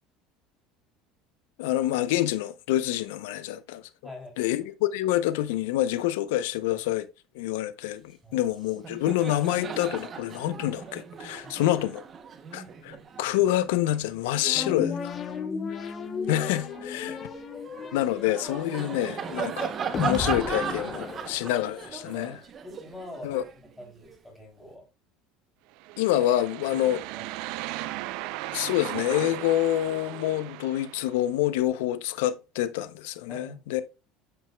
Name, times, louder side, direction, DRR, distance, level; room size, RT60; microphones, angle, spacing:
voice 1, 1.6-3.9 4.4-7.1 7.3-8.0 8.3-11.9 12.5-14.9 15.8-15.9 16.3-17.1 17.9-19.7 20.0-22.3 23.2-23.4 26.0-27.0 28.5-33.8, left 13 dB, 90° left, 0.6 m, -27 dB
Laughter, 8.3-8.5 8.8-15.5 16.0-24.2, right 6 dB, 25° right, 0.8 m, -37 dB
voice 2, 14.4-14.9 17.1-17.2 22.1-23.4 23.8-24.9 26.7-27.2 33.3-33.6, left 1 dB, 5° left, 3.1 m, -44 dB
sound 1, 14.5-21.9, left 6 dB, 25° left, 0.9 m, -34 dB
sound 2, 25.8-31.2, right 17 dB, 60° right, 0.4 m, -37 dB
9.0 x 7.9 x 2.3 m
cardioid pair, 160°, 0 cm